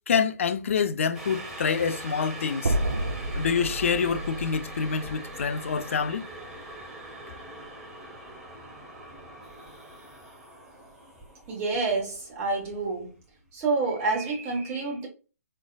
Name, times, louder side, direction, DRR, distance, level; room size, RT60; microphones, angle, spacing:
voice 1, 0.1-2.8 3.3-6.2, left 6 dB, 50° left, 0.5 m, -26 dB
sound 1, 1.1-13.2 13.6-13.7, right 2 dB, 5° right, 0.9 m, -43 dB
sound 2, 2.6-6.8, right 1 dB, 75° right, 0.4 m, -32 dB
voice 2, 11.5-13.2 13.5-15.1, right 3 dB, 20° right, 1.3 m, -28 dB
3.6 x 3.3 x 2.2 m
figure-of-eight pair, 130°, 9 cm